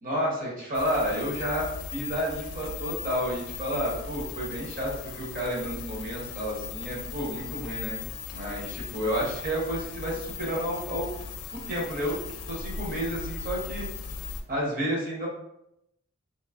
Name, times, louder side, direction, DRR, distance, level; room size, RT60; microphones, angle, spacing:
voice 1, 0.0-8.0 8.3-11.1 11.5-12.2 12.5-13.8 14.5-15.3, equal, 35° right, -4 dB, 0.9 m, -31 dB
sound 1, 0.7-14.4, left 6 dB, 90° left, 0.4 m, -38 dB
3.0 x 3.0 x 2.4 m, 0.81 s
head